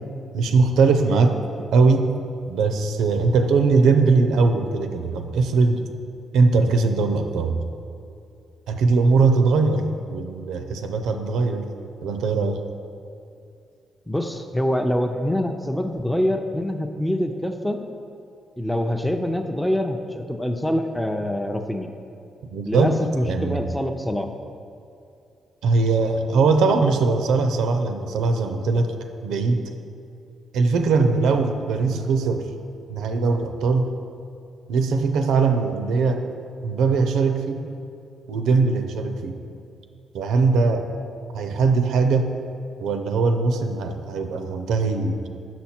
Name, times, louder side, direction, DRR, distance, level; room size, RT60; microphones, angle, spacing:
voice 1, 0.3-1.4 1.7-2.1 2.5-5.9 6.3-7.6 8.7-11.7 12.0-12.6 22.5-23.6 25.6-28.9 29.2-29.7 30.5-32.5 32.9-33.9 34.7-36.3 36.6-37.7 38.3-39.4 40.1-40.9 41.3-42.3 42.8-45.1, right 4 dB, 85° right, 6 dB, 0.5 m, -20 dB
voice 2, 14.1-17.8 18.6-21.9 22.7-24.3, left 1 dB, 5° left, 4 dB, 0.5 m, -25 dB
6.2 x 5.9 x 4.3 m, 2.5 s
cardioid pair, 70°, 0 cm